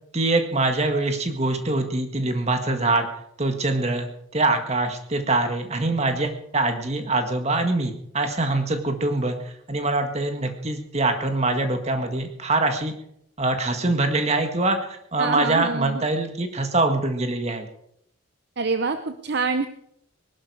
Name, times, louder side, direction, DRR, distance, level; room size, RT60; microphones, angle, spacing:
voice 1, 0.1-3.1 3.4-12.9 13.4-17.7, right 2 dB, 30° right, 6 dB, 1.8 m, -24 dB
voice 2, 15.2-16.0 18.6-19.7, right 4 dB, 55° right, 9 dB, 0.7 m, -26 dB
20.5 x 12.0 x 4.8 m, 0.73 s
head